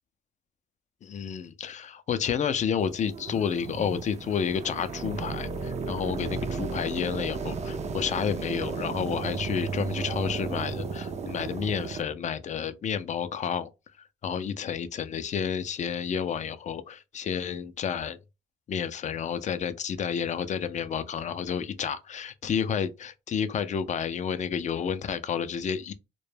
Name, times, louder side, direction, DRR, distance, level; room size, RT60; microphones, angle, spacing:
voice 1, 1.0-13.7 14.2-18.2 18.7-25.9, left 7 dB, 35° left, 0.4 m, -30 dB
sound 1, 2.8-12.0, right 4 dB, 35° right, 0.4 m, -34 dB
2.2 x 2.0 x 3.1 m
cardioid pair, 90°, 20 cm